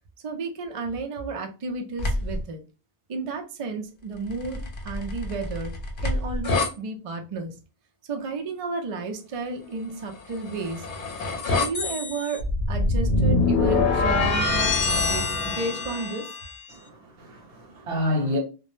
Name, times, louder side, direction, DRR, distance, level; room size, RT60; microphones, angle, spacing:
voice 1, 0.2-2.6 3.1-5.7 6.0-7.5 8.1-10.8 11.4-16.3, right 3 dB, 50° right, 0.4 m, -32 dB
sound 1, 2.0-2.4 4.3-6.7 10.2-16.6, left 3 dB, 60° left, 0.7 m, -25 dB
voice 2, 16.7-18.4, left 1 dB, 70° right, 1.0 m, -29 dB
2.2 x 2.0 x 3.0 m
omnidirectional pair, 1.0 m